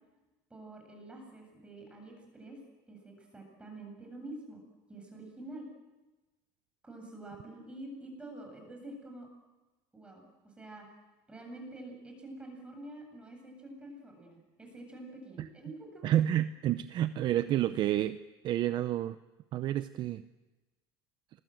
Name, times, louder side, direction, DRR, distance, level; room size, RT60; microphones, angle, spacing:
voice 1, 0.5-2.6 2.9-4.6 4.9-5.7 6.8-9.3 9.9-10.9 11.3-16.1, right 1 dB, 10° right, 2 dB, 7.8 m, -47 dB
voice 2, 16.0-18.2 18.4-19.2 19.5-20.2, right 12 dB, 45° right, 12 dB, 0.7 m, -29 dB
26.5 x 21.5 x 7.8 m, 1.1 s
cardioid pair, 130°, 11 cm